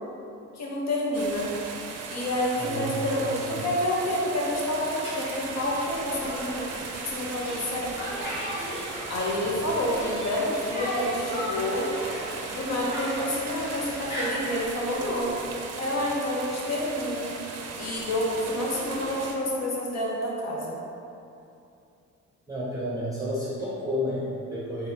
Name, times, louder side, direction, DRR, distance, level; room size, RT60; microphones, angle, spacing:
voice 1, 0.5-1.5 2.1-7.9 9.1-11.9 12.5-15.3 15.8-17.3 17.8-20.8, left 1 dB, 60° left, -4 dB, 0.9 m, -28 dB
sound 1, 1.1-19.4, right 4 dB, 55° right, 0.5 m, -38 dB
voice 2, 2.6-3.7 22.5-24.9, equal, 10° right, -8 dB, 0.7 m, -31 dB
Conversation, 5.0-14.7, equal, 35° left, 1.4 m, -37 dB
3.9 x 3.4 x 2.8 m, 2.7 s
cardioid pair, 90°, 30 cm